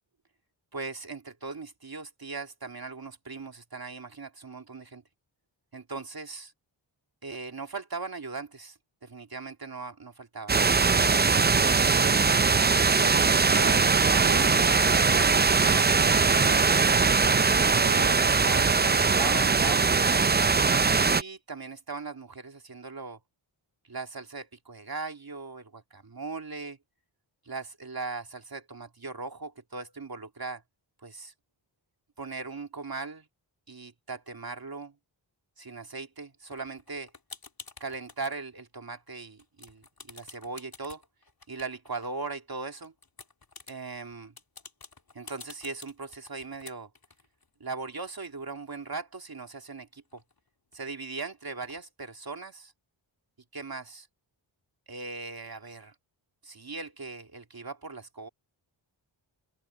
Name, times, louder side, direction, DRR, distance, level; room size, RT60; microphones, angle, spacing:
voice 1, 0.7-5.0 5.7-6.5 7.2-10.6 11.4-12.3 12.9-16.8 17.7-19.9 21.0-23.2 23.9-26.8 27.5-30.6 31.0-31.3 32.2-33.3 33.7-34.9 35.6-37.1 37.8-41.0 41.5-42.9 43.7-44.3 45.1-46.9 47.6-50.2 50.7-52.7 53.5-54.1 54.9-55.9 56.4-58.3, right 4 dB, 50° right, 2.6 m, -39 dB
sound 1, 10.5-21.2, right 4 dB, 20° right, 0.5 m, -21 dB
sound 2, 36.5-38.4 38.8-39.1 39.4-42.4 42.8-49.0 49.3-49.4 49.6-51.0 51.6-51.8, left 4 dB, 50° left, 3.4 m, -50 dB
open air
cardioid pair, 50°, 48 cm